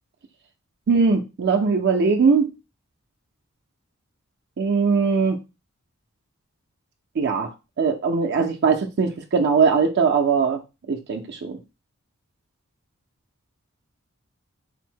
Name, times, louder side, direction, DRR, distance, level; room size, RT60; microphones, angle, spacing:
voice 1, 0.9-2.5 4.6-5.4 7.2-7.5 7.8-10.6 10.9-11.6, right 5 dB, 55° right, 0.4 m, -20 dB
4.1 x 2.0 x 4.4 m
head